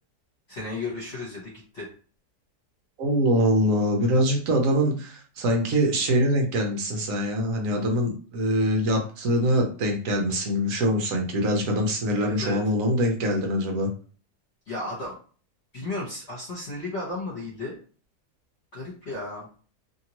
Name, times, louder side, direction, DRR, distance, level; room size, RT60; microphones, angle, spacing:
voice 1, 0.5-1.9 12.1-12.6 14.7-15.1 15.7-17.7 18.7-19.5, left 2 dB, 45° left, -5 dB, 1.2 m, -34 dB
voice 2, 3.0-13.9, equal, 65° right, 2 dB, 1.0 m, -24 dB
2.8 x 2.7 x 2.9 m, 0.40 s
omnidirectional pair, 1.7 m